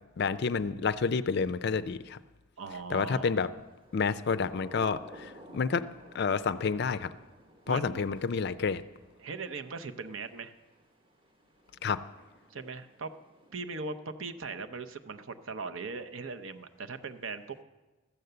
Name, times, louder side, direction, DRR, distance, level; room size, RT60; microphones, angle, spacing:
voice 1, 0.2-2.2 2.9-3.5 3.9-5.9 6.1-7.1 7.7-8.8 11.8-12.0, left 5 dB, 50° left, 14 dB, 0.4 m, -29 dB
voice 2, 2.6-3.4 7.7-8.1 9.2-10.5 12.5-13.1 13.5-17.6, right 4 dB, 65° right, 8 dB, 0.7 m, -39 dB
Thunder / Rain, 3.6-14.2, equal, 25° right, 1.0 m, -55 dB
14.0 x 7.9 x 6.7 m, 1.2 s
head